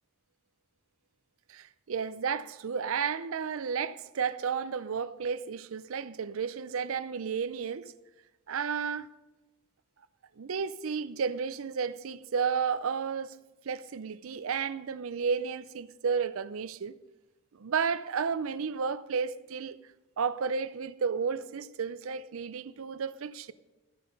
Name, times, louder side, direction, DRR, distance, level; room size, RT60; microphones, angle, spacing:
voice 1, 1.5-7.9 8.5-9.1 10.4-13.4 13.6-17.0 17.5-19.8 20.2-23.5, right 6 dB, 65° right, 0.5 m, -32 dB
14.0 x 9.4 x 5.2 m
head